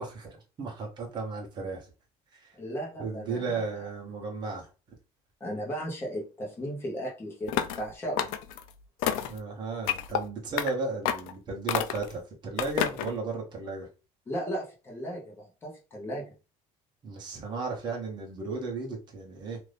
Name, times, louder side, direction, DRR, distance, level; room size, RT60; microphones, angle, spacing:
voice 1, 0.0-1.9 2.3-2.6 3.0-4.7 9.2-13.9 17.0-19.6, right 4 dB, 30° right, 0.9 m, -35 dB
voice 2, 2.6-3.6 5.4-8.3 14.3-16.3, equal, 15° left, 1.0 m, -36 dB
sound 1, 7.5-7.8 8.2-8.6 9.0-9.4 9.9-10.2 10.6-10.7 11.0-11.3 11.7-12.1 12.6-13.1, left 10 dB, 75° left, 0.4 m, -29 dB
2.7 x 2.6 x 3.3 m
cardioid pair, 175°, 14 cm